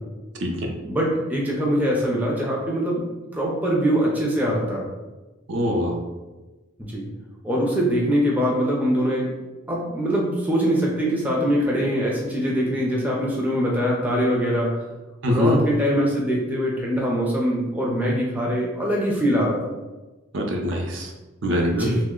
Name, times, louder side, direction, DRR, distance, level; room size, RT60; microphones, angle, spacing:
voice 1, 0.8-3.0 3.3-4.9 6.8-7.1 7.4-9.3 9.7-14.8 15.3-19.7 21.7-22.0, equal, 10° right, -3 dB, 0.4 m, -23 dB
voice 2, 5.5-6.0 15.2-15.6 20.3-21.1 21.4-21.9, equal, 65° right, 1 dB, 0.5 m, -23 dB
2.9 x 2.1 x 3.6 m, 1.1 s
head